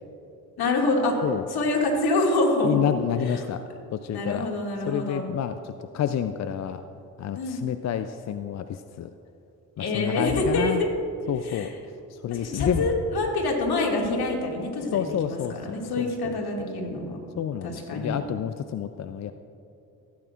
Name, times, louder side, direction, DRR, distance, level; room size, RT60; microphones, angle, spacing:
voice 1, 0.6-1.2 1.5-2.8 3.2-3.4 4.1-5.2 7.3-7.7 9.8-10.9 11.4-11.7 12.3-17.2 17.6-18.2, left 2 dB, 60° left, 0 dB, 2.3 m, -26 dB
voice 2, 2.6-3.6 3.9-4.5 4.9-6.8 7.2-9.1 9.8-10.8 11.3-11.7 12.1-12.9 14.9-15.6 16.0-16.3 17.4-19.3, left 9 dB, 40° left, 10 dB, 0.5 m, -29 dB
16.0 x 9.3 x 2.5 m, 2.8 s
hypercardioid pair, 50°, 44 cm